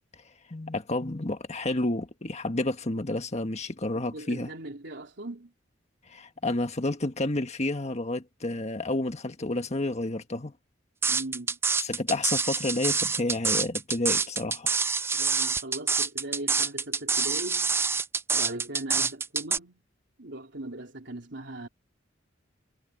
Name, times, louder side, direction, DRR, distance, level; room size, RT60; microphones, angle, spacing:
voice 1, 0.5-4.5 6.1-10.5 11.8-14.8, left 2 dB, 35° left, 1.6 m, -30 dB
voice 2, 3.9-5.5 11.0-11.6 15.1-17.7 18.3-19.8 20.2-21.7, right 1 dB, 65° right, 3.6 m, -39 dB
sound 1, 11.0-19.6, right 5 dB, 15° right, 0.4 m, -26 dB
head